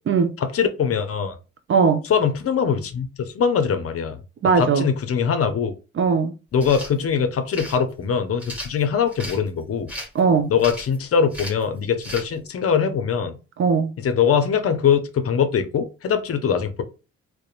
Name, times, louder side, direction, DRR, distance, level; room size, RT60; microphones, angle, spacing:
voice 1, 0.4-1.4 2.1-4.2 4.6-5.7 6.5-9.9 10.5-13.3 14.0-16.8, left 7 dB, 50° left, 0.6 m, -22 dB
voice 2, 1.7-2.0 4.4-4.9 6.0-6.4 10.1-10.5 13.6-13.9, right 5 dB, 40° right, 0.5 m, -19 dB
sound 1, 6.5-6.9 7.5-7.8 8.4-9.4 9.9-10.2 10.6-11.0 11.3-11.6 12.0-12.3, equal, 5° right, 1.3 m, -35 dB
2.8 x 2.1 x 2.4 m
supercardioid pair, 55°, 31 cm